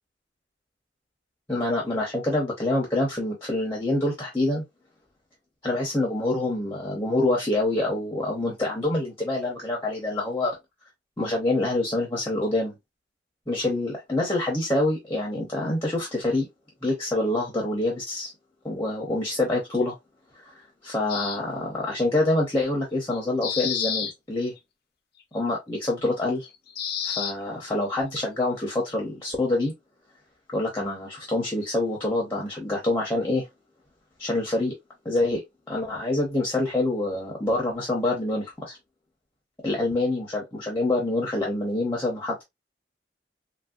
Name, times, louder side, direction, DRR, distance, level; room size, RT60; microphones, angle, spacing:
voice 1, 1.5-4.6 5.6-10.6 11.2-12.8 13.5-16.5 16.8-18.3 18.6-19.9 20.4-20.5 20.8-24.5 25.3-26.5 27.0-29.7 30.5-33.5 34.2-34.7 35.0-35.4 35.7-38.8 39.6-42.4, left 2 dB, 15° left, 0.7 m, -26 dB
sound 1, 21.1-21.4 23.1-24.1 24.6-24.7 26.4-27.3, left 8 dB, 55° left, 0.5 m, -29 dB
3.1 x 2.6 x 2.3 m
head